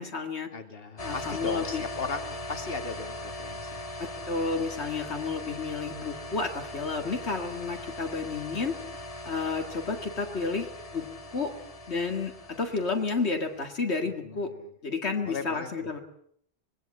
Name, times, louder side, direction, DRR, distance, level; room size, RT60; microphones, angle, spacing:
voice 1, 0.0-0.5 1.0-1.8 4.0-8.8 9.3-11.5 11.9-14.5 14.8-16.0, left 4 dB, 75° left, 4 dB, 2.3 m, -31 dB
voice 2, 0.5-3.9 14.2-14.7 15.2-15.9, left 4 dB, 60° left, 7 dB, 2.4 m, -37 dB
sound 1, 1.0-13.6, left 1 dB, 35° left, 1.4 m, -40 dB
25.5 x 20.5 x 8.7 m, 0.68 s
omnidirectional pair, 1.1 m